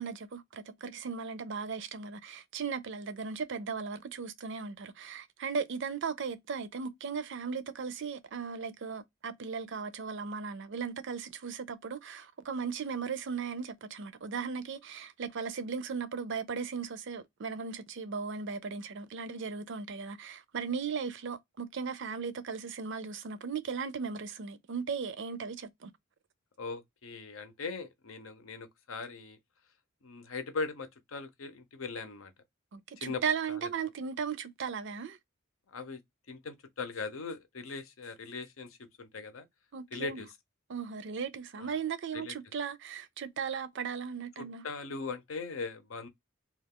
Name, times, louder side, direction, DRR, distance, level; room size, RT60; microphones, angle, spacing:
voice 1, 0.0-25.9 32.7-35.2 39.7-40.2 40.7-44.6, right 6 dB, 60° right, 0.5 m, -37 dB
voice 2, 26.6-29.4 30.0-32.3 33.0-33.2 33.6-33.7 35.7-36.0 36.3-39.5 39.9-40.3 41.6-41.7 42.1-42.3 44.4-46.1, left 4 dB, 75° left, 0.7 m, -40 dB
2.4 x 2.3 x 3.5 m
head